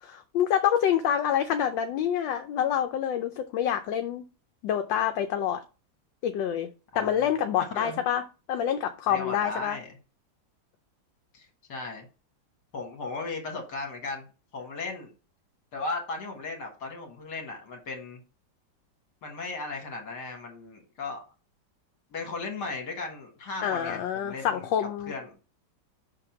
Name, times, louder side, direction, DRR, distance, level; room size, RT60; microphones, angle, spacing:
voice 1, 0.0-4.2 4.6-5.6 6.2-6.7 6.9-8.2 8.5-9.8 23.6-25.1, left 9 dB, 80° left, 1.3 m, -27 dB
voice 2, 9.1-9.9 11.3-12.1 12.7-14.3 14.5-15.1 15.7-18.2 19.2-21.2 22.1-24.7 25.1-25.3, left 3 dB, 65° left, 2.0 m, -36 dB
5.9 x 3.7 x 5.7 m
omnidirectional pair, 2.0 m